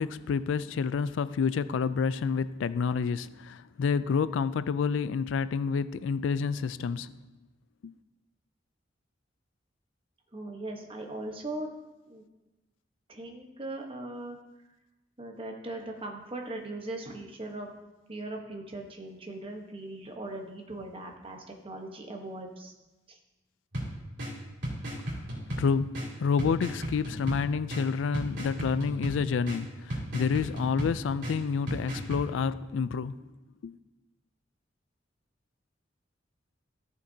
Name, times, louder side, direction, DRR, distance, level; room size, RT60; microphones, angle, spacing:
voice 1, 0.0-7.1 7.8-7.9 25.1-25.2 25.5-33.2 33.6-33.7, left 5 dB, 75° left, 0.3 m, -29 dB
voice 2, 10.3-11.7 12.1-12.2 13.1-14.4 15.2-17.7 18.1-22.7 23.1-23.2, right 2 dB, 30° right, 1.1 m, -39 dB
sound 1, 23.7-32.3, equal, 65° right, 3.1 m, -36 dB
14.0 x 6.6 x 2.8 m
head